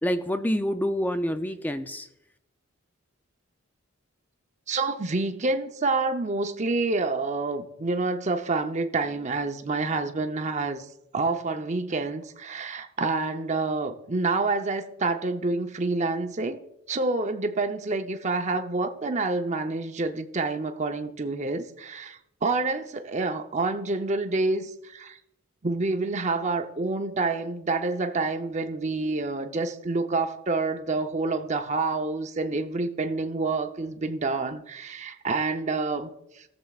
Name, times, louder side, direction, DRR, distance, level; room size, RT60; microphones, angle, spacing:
voice 1, 0.0-2.1, equal, 10° left, 0.4 m, -27 dB
voice 2, 4.7-10.8 11.1-16.6 16.9-25.2 25.6-36.1 36.4-36.5, right 3 dB, 35° right, 0.7 m, -28 dB
17.5 x 7.2 x 2.4 m
head